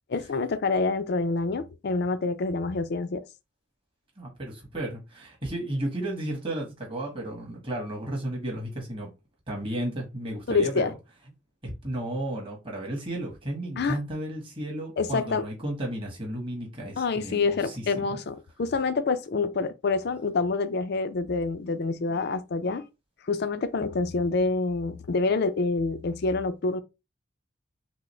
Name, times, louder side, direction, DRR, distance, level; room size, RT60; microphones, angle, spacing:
voice 1, 0.1-3.2 10.5-10.9 13.8-14.0 15.0-15.5 17.0-22.9 23.2-26.8, left 3 dB, 60° left, 0.5 m, -27 dB
voice 2, 4.2-9.1 9.5-10.9 11.6-18.2, right 1 dB, 30° right, 1.6 m, -33 dB
6.0 x 2.0 x 3.2 m
head